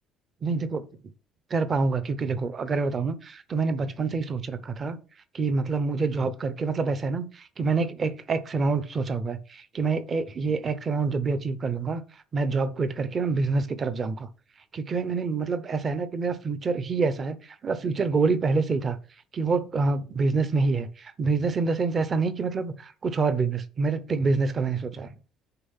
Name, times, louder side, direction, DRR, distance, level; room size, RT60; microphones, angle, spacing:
voice 1, 0.4-0.8 1.5-5.0 5.3-12.0 12.3-14.3 14.7-17.4 17.6-19.0 19.3-25.1, right 4 dB, 25° right, 0.7 m, -26 dB
6.8 x 5.1 x 5.6 m
cardioid pair, 170°, 0 cm